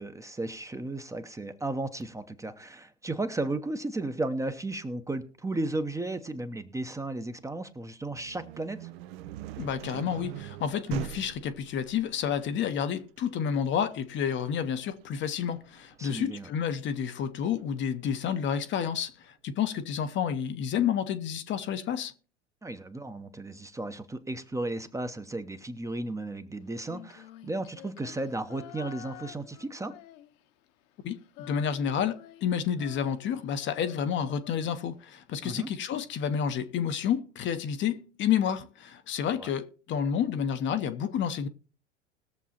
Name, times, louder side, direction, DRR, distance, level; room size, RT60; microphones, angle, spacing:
voice 1, 0.0-8.9 16.0-16.5 22.6-29.9 35.4-35.7 39.4-39.5, right 2 dB, 10° right, 0.8 m, -34 dB
sound 1, 8.0-17.8, right 13 dB, 55° right, 0.7 m, -43 dB
voice 2, 9.6-22.1 31.0-41.5, left 8 dB, 30° left, 0.8 m, -30 dB
Female singing, 26.8-30.7 30.9-35.2, left 13 dB, 50° left, 1.1 m, -49 dB
20.5 x 7.2 x 2.9 m
figure-of-eight pair, 85°, 36 cm